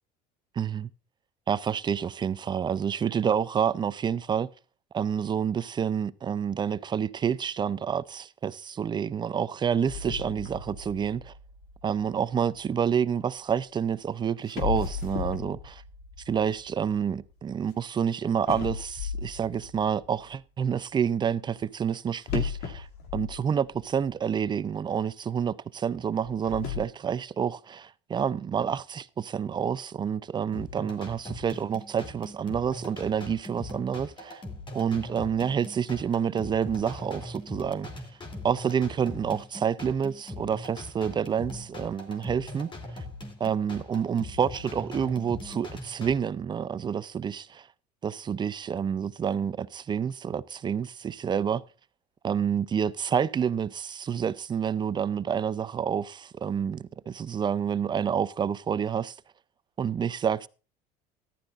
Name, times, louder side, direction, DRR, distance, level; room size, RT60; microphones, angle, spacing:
voice 1, 0.6-0.9 1.5-4.5 4.9-11.3 11.8-15.8 16.3-22.9 23.1-34.4 34.7-37.9 38.4-42.7 43.4-47.7 48.0-51.6 52.2-59.1 59.8-60.5, right 7 dB, 25° right, 0.6 m, -28 dB
sound 1, 9.9-13.0 14.0-14.1 14.5-17.8 18.5-20.3 22.2-24.0 24.3-24.4 25.0-25.1 26.1-26.8, left 7 dB, 70° left, 2.6 m, -36 dB
sound 2, 30.5-46.1, left 1 dB, 30° left, 3.0 m, -41 dB
14.5 x 12.0 x 2.5 m
cardioid pair, 120°, 17 cm